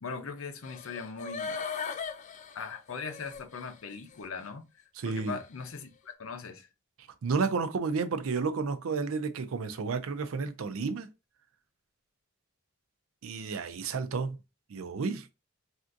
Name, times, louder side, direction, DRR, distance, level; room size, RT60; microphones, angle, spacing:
voice 1, 0.0-1.6 2.5-4.7 5.0-6.7, left 5 dB, 80° left, 0.6 m, -40 dB
sound 1, 0.6-3.7 4.1-4.2, left 5 dB, 35° left, 0.3 m, -38 dB
voice 2, 5.0-5.4 7.2-11.1 13.2-14.4 14.7-15.4, right 4 dB, 80° right, 0.5 m, -31 dB
3.4 x 2.5 x 2.5 m
head